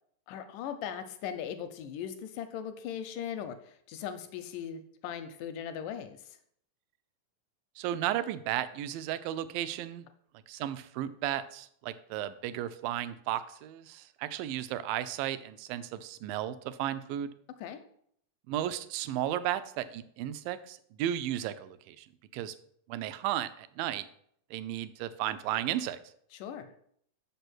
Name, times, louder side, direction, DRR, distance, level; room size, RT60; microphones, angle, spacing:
voice 1, 0.3-6.4 17.6-17.8 26.3-26.7, left 8 dB, 80° left, 9 dB, 2.0 m, -39 dB
voice 2, 7.8-10.1 10.5-17.3 18.5-22.1 22.3-22.5 22.9-24.1 24.5-26.0, right 12 dB, 80° right, 13 dB, 2.2 m, -34 dB
6.8 x 5.4 x 6.0 m, 0.67 s
omnidirectional pair, 4.1 m